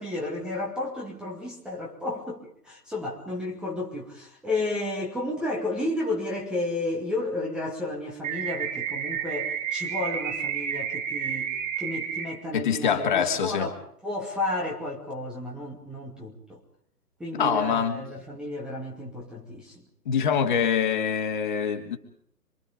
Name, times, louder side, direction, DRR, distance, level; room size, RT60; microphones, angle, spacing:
voice 1, 0.0-11.5 11.8-13.8 14.0-16.6 17.2-19.8 20.4-20.7, left 2 dB, ahead, -2 dB, 2.4 m, -32 dB
sound 1, 8.2-12.2, right 8 dB, 25° right, 5.0 m, -30 dB
voice 2, 12.5-13.7 17.4-18.0 20.0-22.0, left 7 dB, 30° left, 4 dB, 3.0 m, -25 dB
27.5 x 24.5 x 5.2 m, 0.63 s
figure-of-eight pair, 140°, 48 cm